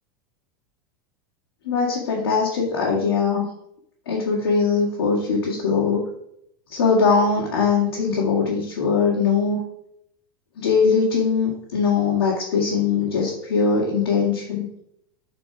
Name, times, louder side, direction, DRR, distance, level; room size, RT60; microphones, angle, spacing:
voice 1, 1.7-3.4 4.1-6.0 6.7-9.6 10.6-14.7, left 5 dB, 85° left, -4 dB, 2.2 m, -21 dB
7.0 x 4.4 x 4.8 m, 0.73 s
supercardioid pair, 135°, 12 cm